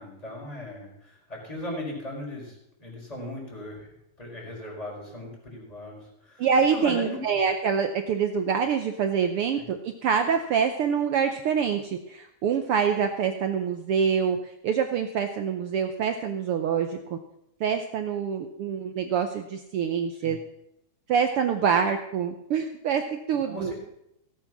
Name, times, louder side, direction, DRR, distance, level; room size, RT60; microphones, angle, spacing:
voice 1, 0.0-3.9 4.2-7.2 9.6-9.7 20.1-20.4 23.4-23.7, left 1 dB, 10° left, -3 dB, 4.7 m, -38 dB
voice 2, 6.4-14.4 14.6-17.2 17.6-20.4 21.1-23.7, right 7 dB, 80° right, 6 dB, 1.2 m, -25 dB
17.5 x 8.1 x 6.1 m, 0.79 s
omnidirectional pair, 3.6 m